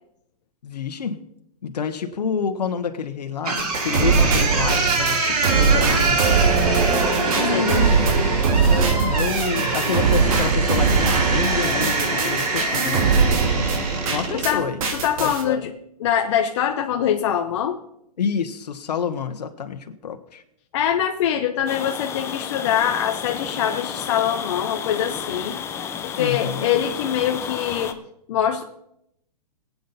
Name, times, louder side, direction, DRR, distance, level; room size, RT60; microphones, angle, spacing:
voice 1, 0.6-1.2 1.6-6.2 7.4-8.4 9.0-13.0 14.1-14.8 15.2-15.7 18.2-20.4 26.2-26.7, left 6 dB, 85° left, 6 dB, 1.3 m, -28 dB
sound 1, 3.4-14.5, right 3 dB, 80° right, 6.3 m, -24 dB
sound 2, 3.6-14.5 14.8-15.4, right 5 dB, 55° right, 2.8 m, -21 dB
voice 2, 7.5-7.8 14.3-15.7 16.0-17.8 20.7-25.6 26.2-28.0 28.3-28.6, left 9 dB, 45° left, 4 dB, 0.9 m, -23 dB
sound 3, 21.7-27.9, left 7 dB, 15° left, 0.6 m, -32 dB
22.5 x 8.5 x 4.1 m, 0.79 s
hypercardioid pair, 150°, 20 cm